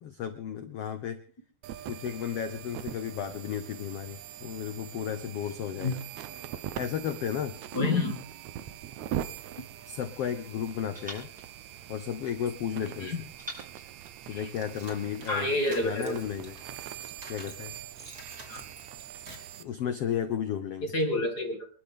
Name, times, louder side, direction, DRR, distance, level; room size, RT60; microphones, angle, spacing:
voice 1, 0.0-1.2 1.9-6.0 6.8-7.6 9.9-11.3 11.9-13.1 14.3-15.5 15.8-16.6 17.3-17.7 19.6-20.9, left 9 dB, 80° left, 10 dB, 1.3 m, -33 dB
sound 1, 1.6-19.6, right 11 dB, 70° right, 1.8 m, -42 dB
voice 2, 7.7-8.2 12.8-13.2 14.3-14.5 15.3-16.2 18.5-18.6 20.8-21.7, left 2 dB, 30° left, 4 dB, 2.6 m, -29 dB
sound 2, 10.9-12.6 13.4-15.0, equal, ahead, 7.6 m, -48 dB
sound 3, 14.1-17.6 18.0-19.6, right 2 dB, 25° right, 3.0 m, -48 dB
27.5 x 12.0 x 3.7 m, 0.40 s
omnidirectional pair, 4.2 m